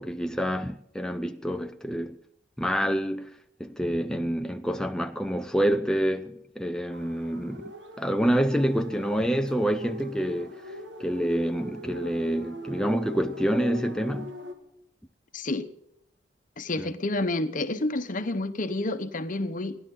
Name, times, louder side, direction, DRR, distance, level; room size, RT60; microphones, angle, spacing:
voice 1, 0.0-2.2 2.6-3.3 3.6-14.3 16.8-16.9, equal, 5° left, 0.5 m, -27 dB
sound 1, 6.9-14.5, equal, 75° right, 2.0 m, -41 dB
voice 2, 15.3-15.7 16.6-19.8, left 2 dB, 50° left, 1.1 m, -29 dB
29.5 x 11.5 x 3.9 m
head